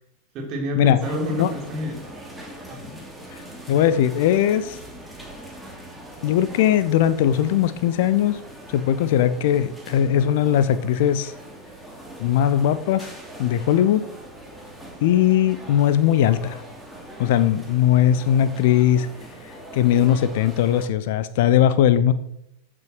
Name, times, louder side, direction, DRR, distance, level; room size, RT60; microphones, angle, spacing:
voice 1, 0.3-2.1 2.7-3.0, left 1 dB, 35° right, 2 dB, 3.5 m, -29 dB
sound 1, 1.0-20.9, right 1 dB, ahead, 2.7 m, -41 dB
voice 2, 3.7-4.8 6.2-8.4 8.7-11.3 12.2-13.1 13.4-14.0 15.0-16.6 17.2-19.1 19.7-22.1, left 10 dB, 50° left, 14 dB, 0.7 m, -19 dB
14.5 x 6.2 x 4.6 m, 0.77 s
figure-of-eight pair, 90°, 0 cm